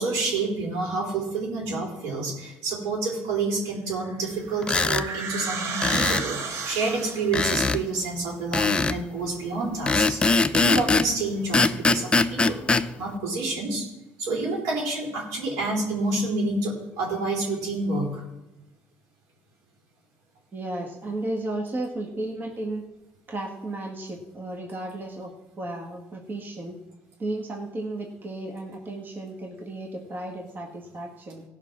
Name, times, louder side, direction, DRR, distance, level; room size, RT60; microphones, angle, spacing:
voice 1, 0.0-12.6 13.0-13.8 14.2-18.2, right 3 dB, 85° right, -1 dB, 4.6 m, -28 dB
sound 1, 4.0-7.4, right 5 dB, 65° right, 1.7 m, -33 dB
sound 2, 4.6-5.1 5.8-6.3 7.3-7.8 8.5-9.0 9.9-11.1 11.5-12.9, left 3 dB, 20° left, 0.6 m, -21 dB
voice 2, 20.5-22.8 23.3-25.3 25.6-26.8 27.2-31.4, right 2 dB, 35° right, 1 dB, 1.8 m, -34 dB
17.0 x 5.6 x 6.1 m, 0.98 s
cardioid pair, 95°, 5 cm